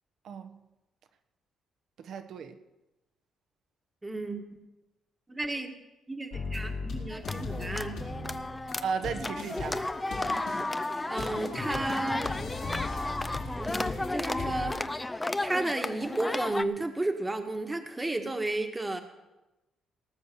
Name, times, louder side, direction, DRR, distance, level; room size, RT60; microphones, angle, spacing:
voice 1, 0.2-0.6 2.0-2.6 8.8-9.9, right 6 dB, 70° right, 1.1 m, -35 dB
voice 2, 4.0-4.4 5.3-5.7 6.1-8.0 11.1-12.3 13.6-14.8 15.4-19.0, right 2 dB, 15° right, 1.5 m, -33 dB
sound 1, 6.3-14.7, left 3 dB, 75° left, 3.9 m, -38 dB
sound 2, 7.1-16.6, left 2 dB, 15° left, 0.6 m, -33 dB
18.5 x 6.5 x 6.9 m
cardioid pair, 90°, 0 cm